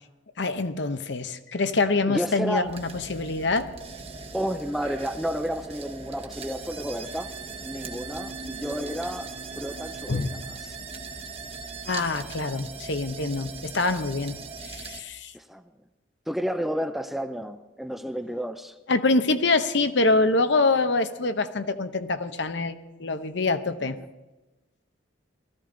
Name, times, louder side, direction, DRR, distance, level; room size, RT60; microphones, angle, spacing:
voice 1, 0.4-3.7 10.1-10.3 11.9-14.4 14.6-15.3 18.9-24.0, left 3 dB, 65° left, 9 dB, 0.8 m, -25 dB
voice 2, 2.1-2.7 4.3-7.3 7.6-10.8 15.3-15.6 16.3-18.8, equal, ahead, 8 dB, 0.4 m, -31 dB
sound 1, 2.6-15.0, right 4 dB, 30° right, 1.0 m, -39 dB
18.0 x 14.0 x 3.9 m, 1.1 s
head